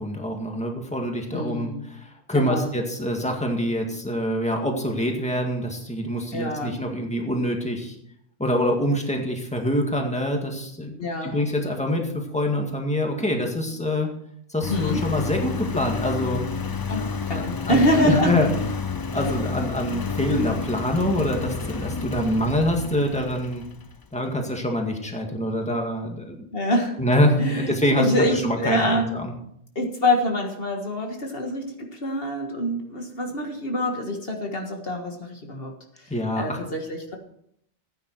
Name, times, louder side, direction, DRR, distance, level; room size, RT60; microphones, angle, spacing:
voice 1, 0.0-8.0 8.4-10.9 11.2-14.1 14.5-16.4 17.3-18.5 19.1-23.6 24.1-26.5 27.0-29.3 36.1-36.6, equal, 5° left, 2 dB, 2.0 m, -25 dB
voice 2, 1.3-1.8 2.3-2.7 6.3-6.8 11.0-11.4 14.7-15.0 16.9-18.4 19.1-19.3 26.5-27.0 27.4-29.1 29.8-37.2, left 1 dB, 60° left, 2 dB, 1.8 m, -26 dB
Engine, 14.6-24.1, left 5 dB, 35° left, 0.4 m, -30 dB
15.0 x 9.2 x 4.7 m, 0.72 s
omnidirectional pair, 1.1 m